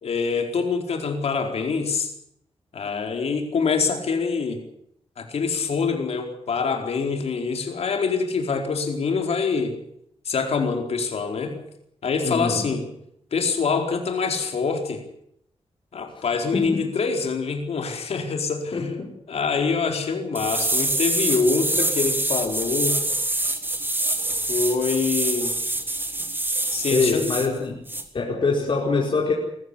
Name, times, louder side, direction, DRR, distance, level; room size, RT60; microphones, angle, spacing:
voice 1, 0.0-2.1 2.7-4.6 5.2-9.8 10.3-11.6 12.0-12.8 13.3-15.0 15.9-18.8 19.3-23.0 24.3-25.5 26.7-27.2, left 5 dB, 75° left, 3 dB, 4.4 m, -25 dB
voice 2, 12.2-12.7 16.5-17.0 18.7-19.1 26.9-27.8 28.1-29.3, left 4 dB, 55° left, -2 dB, 4.8 m, -24 dB
sound 1, 20.3-27.5 27.9-28.0, right 2 dB, 20° right, 3.2 m, -25 dB
22.0 x 14.5 x 9.9 m, 0.74 s
cardioid pair, 85°, 11 cm